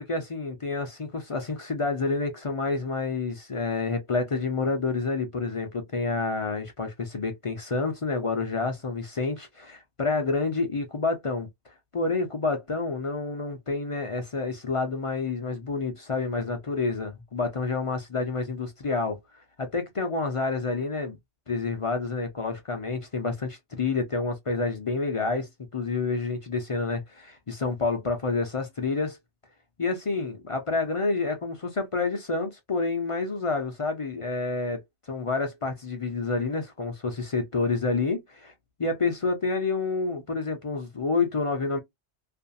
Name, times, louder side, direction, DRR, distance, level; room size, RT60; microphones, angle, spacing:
voice 1, 0.0-19.2 19.6-21.2 21.5-29.2 29.8-34.8 35.1-38.5 38.8-41.8, left 3 dB, 40° left, 0.5 m, -28 dB
2.5 x 2.3 x 2.6 m
omnidirectional pair, 1.1 m